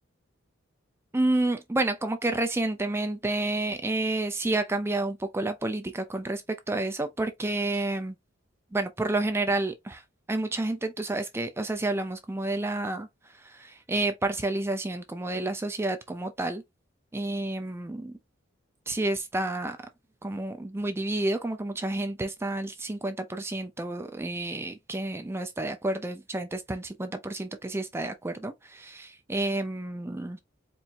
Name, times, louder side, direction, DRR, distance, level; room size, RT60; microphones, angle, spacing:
voice 1, 1.1-6.4 6.7-8.1 8.7-10.0 10.3-13.1 13.4-16.6 17.1-18.1 18.9-19.8 20.2-30.4, right 2 dB, 10° right, 0.4 m, -30 dB
4.5 x 2.6 x 2.5 m
head